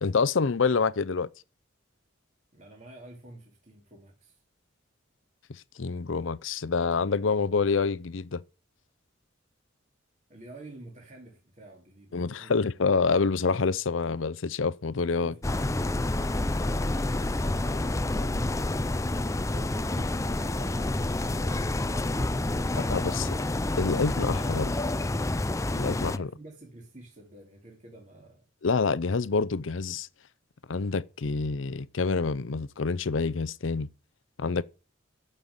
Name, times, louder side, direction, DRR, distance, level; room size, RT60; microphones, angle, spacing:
voice 1, 0.0-1.3 5.5-8.4 12.1-15.3 22.9-23.3 23.8-24.7 25.7-26.3 28.6-30.1 30.7-33.9 34.4-34.6, left 4 dB, 80° left, 0.6 m, -27 dB
voice 2, 2.5-4.4 10.3-12.6 15.2-18.7 19.5-21.8 26.1-28.4, right 2 dB, 40° right, 2.6 m, -49 dB
sound 1, 15.4-26.2, left 2 dB, 15° left, 0.5 m, -28 dB
13.5 x 5.7 x 7.9 m
head